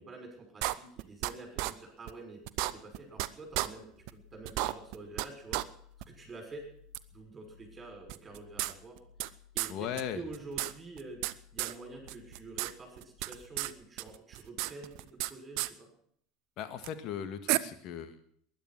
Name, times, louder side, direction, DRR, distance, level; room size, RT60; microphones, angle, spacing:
voice 1, 0.0-3.8 4.1-5.6 6.1-6.7 7.1-9.0 9.5-9.7 10.1-11.2 11.5-14.9 15.3-15.9, right 3 dB, 25° right, 2 dB, 6.1 m, -47 dB
sound 1, 0.6-1.3 1.6-1.7 2.1-2.2 2.5-3.3 3.5-3.7 4.1-4.2 4.4-5.3 5.5-5.6 6.0-6.1 6.9-7.0 8.1-9.3 9.6-9.7 10.0-10.1 10.3-11.3 11.6-11.7 12.1-12.7 13.0-13.7 14.0-15.3 15.6-15.7 16.8-16.9 17.5-17.6, right 18 dB, 60° right, 0.7 m, -32 dB
sound 2, 2.8-14.2, left 7 dB, 75° left, 7.7 m, -60 dB
voice 2, 9.7-10.2 16.6-18.2, left 9 dB, 50° left, 9 dB, 1.9 m, -38 dB
20.0 x 11.0 x 6.2 m, 0.65 s
figure-of-eight pair, 75°, 0 cm